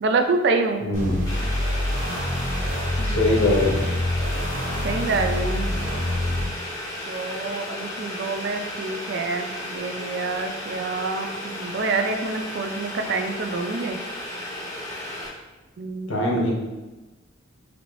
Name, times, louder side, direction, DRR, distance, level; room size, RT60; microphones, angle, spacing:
voice 1, 0.0-0.8 3.0-3.6 4.8-5.7 7.1-14.0 15.8-16.2, right 3 dB, 55° right, 5 dB, 0.4 m, -27 dB
voice 2, 0.8-1.3 3.0-3.8 16.1-16.5, left 2 dB, 85° left, -2 dB, 0.9 m, -22 dB
sound 1, 0.9-6.5, left 1 dB, 35° right, 1.1 m, -26 dB
Boiling, 1.3-15.3, left 1 dB, 20° left, 0.7 m, -34 dB
4.4 x 2.6 x 2.9 m, 1.1 s
head